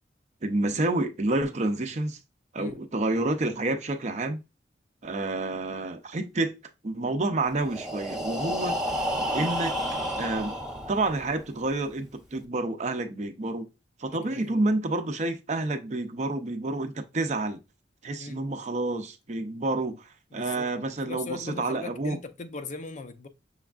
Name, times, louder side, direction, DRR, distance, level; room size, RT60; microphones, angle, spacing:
voice 1, 0.4-2.2 2.5-4.4 5.0-6.6 6.8-8.8 9.3-9.8 10.2-10.5 10.9-13.7 14.0-17.6 18.0-22.2, right 2 dB, 40° right, 0.5 m, -29 dB
Breathing, 7.6-11.5, equal, 5° right, 0.7 m, -31 dB
voice 2, 14.1-14.6 18.2-18.5 20.3-20.7 21.1-23.3, left 3 dB, 40° left, 0.5 m, -39 dB
6.3 x 3.4 x 2.4 m
head